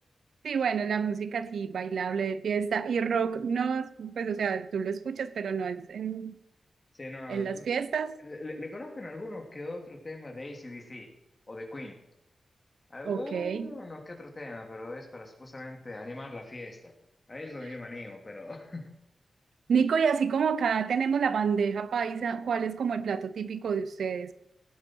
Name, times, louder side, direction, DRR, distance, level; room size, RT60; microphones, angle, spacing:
voice 1, 0.4-6.4 7.3-8.2 13.1-13.7 19.7-24.3, right 6 dB, 90° right, 0.7 m, -29 dB
voice 2, 6.9-7.7 8.2-11.1 11.5-12.0 12.9-16.9 17.3-18.9, left 2 dB, 30° left, 2.8 m, -41 dB
18.0 x 9.8 x 4.7 m
wide cardioid pair, 100°, 0 cm